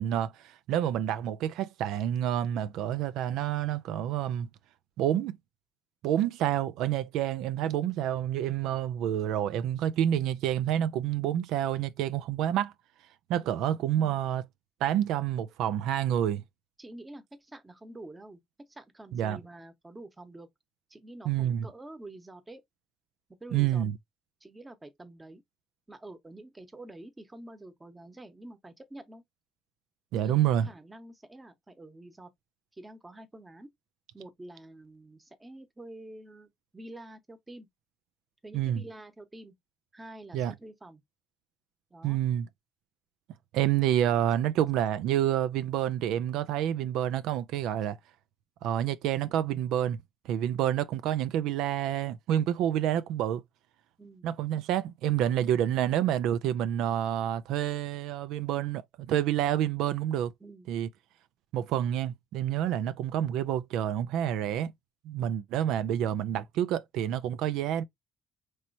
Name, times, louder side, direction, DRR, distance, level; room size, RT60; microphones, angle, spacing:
voice 1, 0.0-4.5 5.0-5.4 6.0-12.7 13.3-14.5 14.8-16.4 19.1-19.4 21.3-21.7 23.5-24.0 30.1-30.7 38.5-38.8 40.3-40.5 42.0-42.5 43.5-48.0 48.6-53.4 54.2-60.3 60.7-60.9 61.5-64.7 65.0-67.8, right 11 dB, 85° right, 0.3 m, -28 dB
voice 2, 16.8-18.4 18.7-20.5 20.9-22.6 23.4-23.8 24.4-25.4 25.9-29.2 30.1-32.3 32.7-33.7 34.1-37.7 38.4-39.5 39.9-41.0 41.9-42.2 54.0-54.3 60.4-60.7, right 1 dB, 15° right, 1.0 m, -47 dB
4.2 x 3.1 x 2.6 m
cardioid pair, 100°, 0 cm